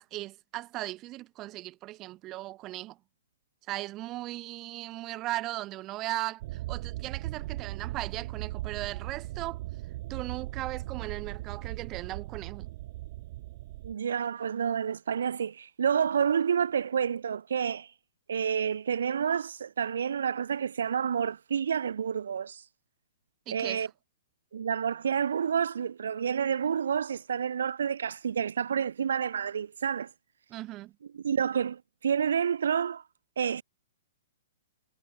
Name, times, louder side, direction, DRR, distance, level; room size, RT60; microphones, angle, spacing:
voice 1, 0.0-3.0 3.7-9.6 10.1-12.7 23.5-23.9 30.5-30.9, right 17 dB, 30° right, 5.1 m, -37 dB
sound 1, 6.4-13.9, right 17 dB, 50° right, 0.9 m, -38 dB
voice 2, 13.8-17.9 18.3-22.7 23.5-23.9 24.5-30.1 31.2-33.0 33.4-33.6, right 7 dB, 80° right, 0.7 m, -29 dB
hypercardioid pair, 140°, 0 cm